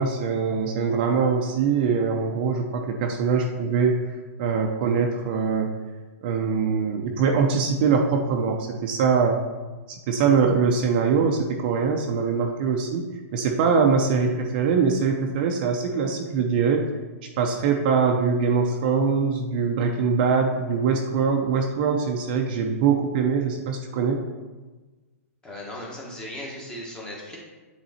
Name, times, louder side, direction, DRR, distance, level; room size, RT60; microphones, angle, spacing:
voice 1, 0.0-4.0 4.4-5.7 6.2-9.4 9.9-16.9 17.4-24.2, right 5 dB, 40° right, 2 dB, 0.6 m, -23 dB
voice 2, 25.4-27.4, left 1 dB, 10° left, -2 dB, 1.2 m, -37 dB
9.0 x 4.0 x 4.2 m, 1.3 s
hypercardioid pair, 165°, 8 cm